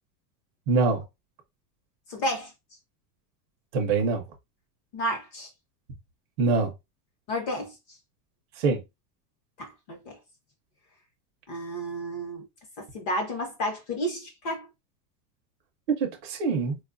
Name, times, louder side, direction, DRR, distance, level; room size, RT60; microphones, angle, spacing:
voice 1, 0.7-1.0 3.7-4.2 6.4-6.7 8.6-8.8 15.9-16.8, right 4 dB, 30° right, 0.6 m, -24 dB
voice 2, 2.1-2.5 4.9-5.5 7.3-7.7 9.6-10.2 11.5-12.5 12.8-14.7, equal, 30° left, 0.9 m, -31 dB
4.3 x 2.3 x 2.5 m
supercardioid pair, 180°, 48 cm